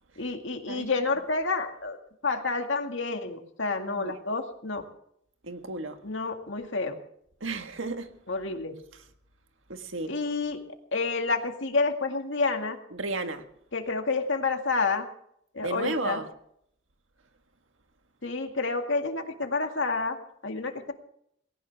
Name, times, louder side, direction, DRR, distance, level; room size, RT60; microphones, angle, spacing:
voice 1, 0.2-2.0 2.2-4.8 6.0-7.0 8.3-8.7 10.1-10.6 10.9-12.8 13.7-15.1 15.5-16.2 18.2-20.9, left 3 dB, 70° left, 2.1 m, -29 dB
voice 2, 3.9-4.2 5.4-6.0 7.4-8.1 8.9-9.0 9.7-10.2 12.9-13.4 15.6-16.3, right 2 dB, 80° right, 1.6 m, -33 dB
19.5 x 18.0 x 3.5 m
head